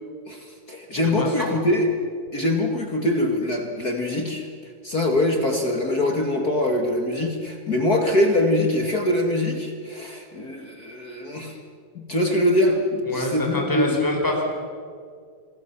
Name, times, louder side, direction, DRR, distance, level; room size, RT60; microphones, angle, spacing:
voice 1, 0.3-1.9 2.3-4.5 4.8-11.6 11.9-14.0, left 1 dB, 40° left, 3 dB, 1.3 m, -23 dB
voice 2, 1.2-1.6 13.1-14.4, left 2 dB, 5° left, 0 dB, 4.6 m, -25 dB
28.5 x 21.5 x 7.2 m, 2.1 s
omnidirectional pair, 5.1 m